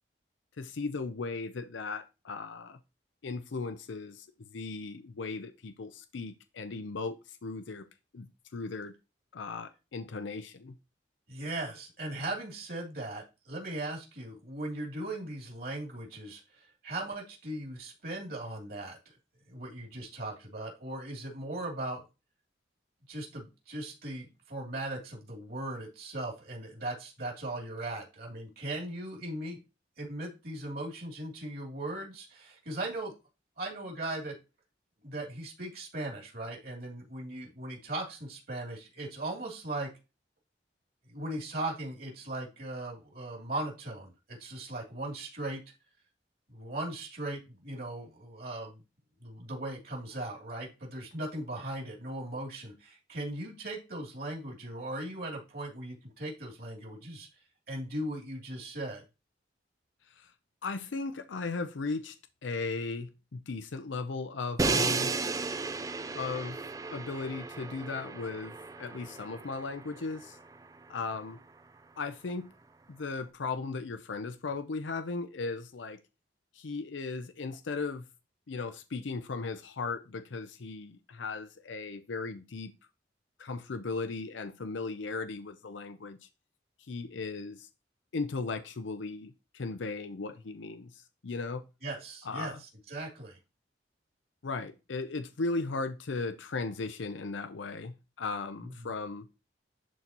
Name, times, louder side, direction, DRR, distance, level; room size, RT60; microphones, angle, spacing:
voice 1, 0.6-2.8 3.2-7.9 8.1-8.9 9.3-10.7 60.1-60.3 60.6-62.2 62.4-65.1 66.1-66.6 66.9-70.4 70.9-71.4 72.0-72.5 72.9-76.0 76.5-78.1 78.5-82.7 83.4-86.3 86.9-87.7 88.1-91.6 92.2-92.6 94.4-99.3, left 3 dB, 85° left, 0.6 m, -37 dB
voice 2, 11.3-19.0 19.5-22.0 23.1-29.6 30.0-33.1 33.6-34.4 35.0-39.9 41.1-45.6 46.5-48.8 49.2-57.3 57.7-59.0 91.8-92.5 92.9-93.4 98.6-98.9, right 1 dB, 55° right, 2.8 m, -38 dB
Crash cymbal, 64.6-70.6, right 4 dB, 20° right, 0.3 m, -34 dB
11.0 x 4.0 x 2.9 m
head